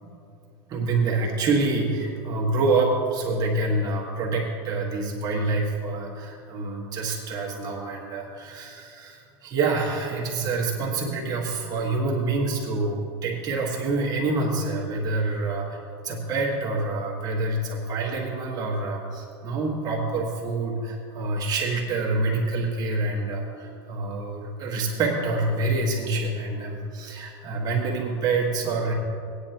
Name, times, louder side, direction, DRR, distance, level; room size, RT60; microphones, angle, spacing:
voice 1, 0.7-28.9, right 3 dB, 30° right, -2 dB, 1.5 m, -27 dB
18.0 x 9.7 x 2.9 m, 2.5 s
supercardioid pair, 155°, 13 cm